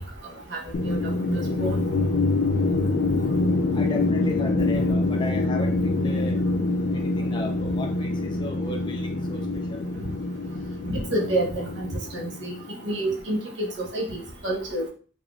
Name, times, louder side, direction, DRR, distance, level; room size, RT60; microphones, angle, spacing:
voice 1, 0.5-1.0 1.2-1.8 10.9-11.9 12.1-12.6 12.8-14.9, right 1 dB, 85° right, -2 dB, 1.2 m, -28 dB
sound 1, 0.7-12.9, left 2 dB, 75° left, 0.5 m, -25 dB
voice 2, 3.7-6.4 6.9-9.9, left 2 dB, 25° left, 3 dB, 0.7 m, -36 dB
4.0 x 3.6 x 2.3 m, 0.39 s
head